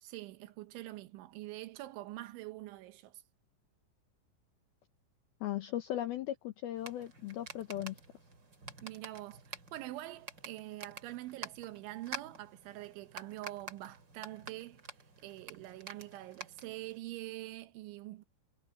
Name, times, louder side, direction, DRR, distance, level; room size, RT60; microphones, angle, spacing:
voice 1, 0.0-3.2 8.8-14.8 15.2-18.2, right 17 dB, 80° right, 3.4 m, -45 dB
voice 2, 5.4-8.0, left 13 dB, 85° left, 2.2 m, -37 dB
sound 1, 6.7-17.0, right 3 dB, 25° right, 3.2 m, -49 dB
omnidirectional pair, 5.5 m